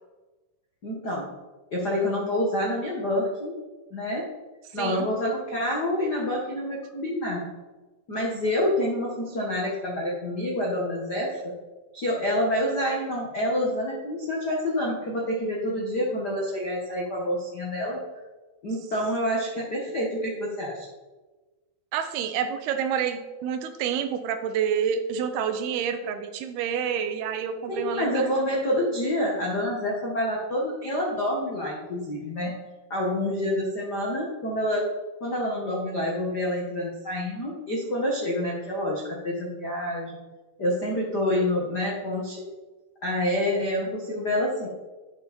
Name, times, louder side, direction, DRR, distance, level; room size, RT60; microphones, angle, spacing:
voice 1, 0.8-1.3 1.7-3.6 3.9-4.3 4.7-7.5 8.1-11.5 11.9-18.0 18.6-20.9 27.7-32.6 32.9-34.9 35.2-40.2 40.6-42.5 43.0-44.7, left 1 dB, 80° left, -3 dB, 0.9 m, -27 dB
voice 2, 4.7-5.1 21.9-28.3, right 7 dB, 80° right, 8 dB, 2.6 m, -28 dB
11.5 x 9.2 x 4.3 m, 1.2 s
omnidirectional pair, 4.8 m